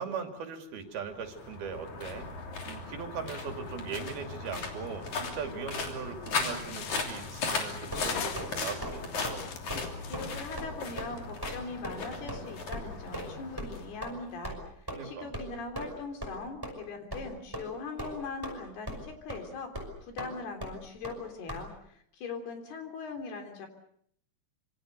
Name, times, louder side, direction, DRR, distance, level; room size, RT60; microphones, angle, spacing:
voice 1, 0.0-2.3 2.7-9.0 14.9-15.3, right 6 dB, 75° right, 5 dB, 4.5 m, -39 dB
sound 1, 1.0-14.4, left 4 dB, 50° left, 4.3 m, -37 dB
sound 2, 6.4-8.9 9.3-11.5, left 7 dB, 65° left, 3.4 m, -43 dB
sound 3, 7.9-8.5 8.8-9.0 9.2-9.4 9.7-9.9 10.1-10.3 10.6-10.7 11.0-11.1 11.4-11.6 11.8-11.9 12.3-12.4 12.7-12.8 13.1-13.3 13.6-13.7 14.0-14.1 14.4-14.6 14.9-15.0 15.3-15.5 15.7-15.9 16.2-16.3 16.6-16.7 17.1-17.2 17.5-17.7 18.0-18.6 18.9-19.0 19.3-19.4 19.7-19.9 20.2-20.3 20.6-20.7 21.0-21.2 21.5-21.6, equal, 5° right, 5.4 m, -38 dB
voice 2, 10.0-23.7, left 4 dB, 80° left, 5 dB, 5.5 m, -41 dB
26.0 x 25.5 x 6.7 m, 0.67 s
omnidirectional pair, 4.5 m